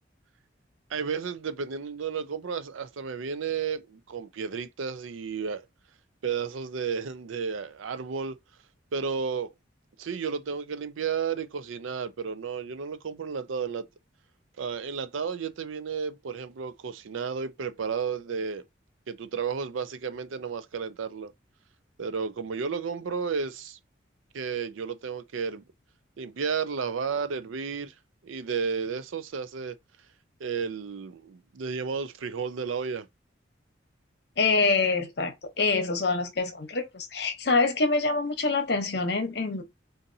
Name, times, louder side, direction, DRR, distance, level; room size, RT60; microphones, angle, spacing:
voice 1, 0.9-5.6 6.2-8.4 8.9-9.5 10.0-13.9 14.6-18.6 19.1-21.3 22.0-23.8 24.3-25.6 26.2-27.9 28.2-29.8 30.4-33.1, right 6 dB, 90° right, 0.5 m, -32 dB
voice 2, 34.4-39.6, left 3 dB, 55° left, 0.8 m, -25 dB
3.9 x 2.6 x 2.6 m
head